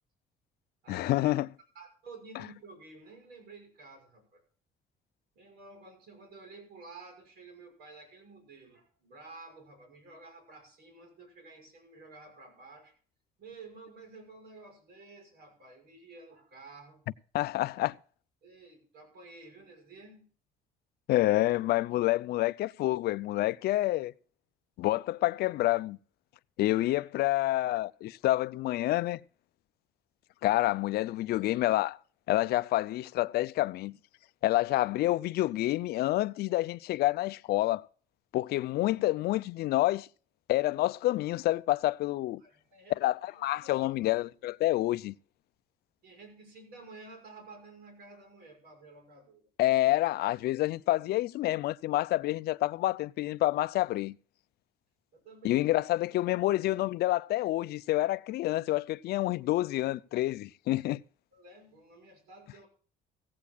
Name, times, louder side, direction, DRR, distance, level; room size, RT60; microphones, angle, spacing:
voice 1, 0.9-1.5 17.3-17.9 21.1-24.1 24.8-26.0 26.6-29.2 30.4-32.0 32.3-34.0 34.4-37.8 38.3-40.1 40.5-42.4 43.0-45.1 49.6-54.2 55.4-61.0, left 16 dB, 70° left, 0.5 m, -28 dB
voice 2, 1.7-4.4 5.3-12.9 13.4-17.0 18.4-20.2 42.4-43.0 43.3-44.1 46.0-49.5 55.1-55.7 61.3-62.7, right 3 dB, 70° right, 6.2 m, -51 dB
16.0 x 15.5 x 2.3 m
cardioid pair, 110°, 17 cm